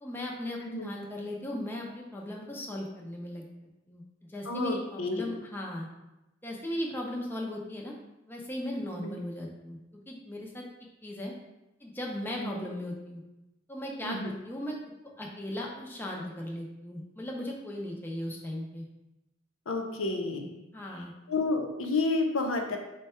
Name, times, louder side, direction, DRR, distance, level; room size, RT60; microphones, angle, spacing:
voice 1, 0.0-3.4 3.9-4.0 4.3-5.9 6.4-7.9 8.3-9.8 10.1-10.6 11.0-11.3 11.8-13.2 13.7-14.8 15.2-18.9 20.7-21.1, left 1 dB, 10° left, -2 dB, 0.5 m, -37 dB
voice 2, 4.5-5.3 8.9-9.2 12.4-12.6 14.0-14.3 19.7-20.5 21.3-22.8, left 3 dB, 85° left, 3 dB, 0.6 m, -30 dB
4.5 x 2.2 x 4.2 m, 0.97 s
head